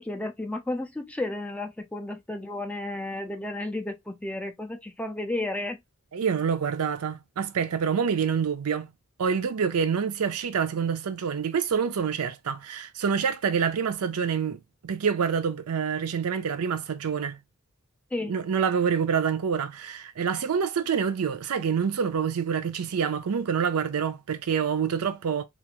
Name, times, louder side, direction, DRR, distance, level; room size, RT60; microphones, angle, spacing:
voice 1, 0.0-5.8 18.1-18.4, left 2 dB, 5° left, 0.3 m, -32 dB
voice 2, 6.1-8.9 9.2-17.4 18.3-25.4, right 6 dB, 75° right, 0.4 m, -27 dB
2.4 x 2.4 x 2.8 m
head